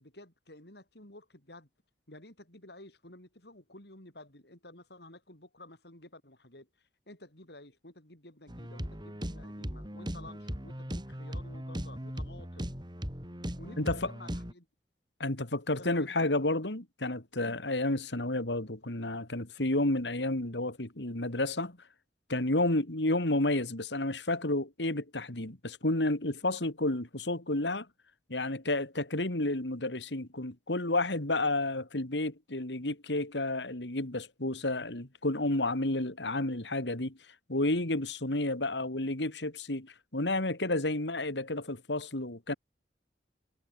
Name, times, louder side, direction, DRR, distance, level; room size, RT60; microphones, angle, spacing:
voice 1, 0.0-1.7 2.1-12.7 13.6-14.7 15.8-16.4 40.9-41.0, left 1 dB, 65° left, 7.8 m, -52 dB
sound 1, 8.5-14.5, equal, 25° right, 6.2 m, -38 dB
voice 2, 13.8-14.1 15.2-21.8 22.3-27.9 28.3-37.2 37.5-42.5, left 2 dB, 85° left, 3.1 m, -31 dB
head